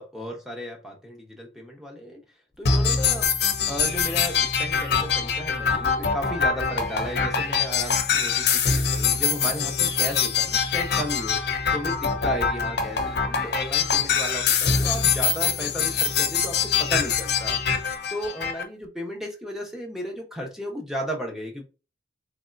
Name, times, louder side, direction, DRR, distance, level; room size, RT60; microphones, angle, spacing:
voice 1, 0.0-2.2 2.6-3.3 3.7-11.4 11.7-17.6 18.1-21.7, equal, ahead, 0.9 m, -34 dB
sound 1, 2.6-18.6, left 6 dB, 60° left, 0.7 m, -24 dB
3.5 x 3.2 x 2.5 m
head